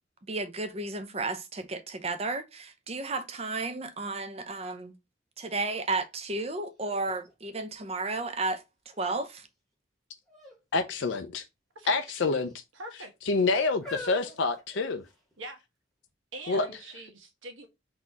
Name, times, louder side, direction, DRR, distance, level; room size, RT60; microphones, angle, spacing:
voice 1, 0.3-4.9 5.4-9.5, right 3 dB, 30° right, 0.6 m, -33 dB
sound 1, 6.3-6.4 6.8-8.3 8.9-9.4 10.3-10.6 10.9-11.1 11.9-12.6 13.3-15.3 16.1-16.2, left 1 dB, ahead, 1.2 m, -46 dB
voice 2, 10.7-11.4 11.9-12.5 13.3-15.0 16.5-16.6, left 3 dB, 70° left, 0.5 m, -27 dB
voice 3, 12.7-13.1 15.4-15.6 16.3-17.7, right 2 dB, 80° right, 1.2 m, -43 dB
4.0 x 2.7 x 4.7 m
head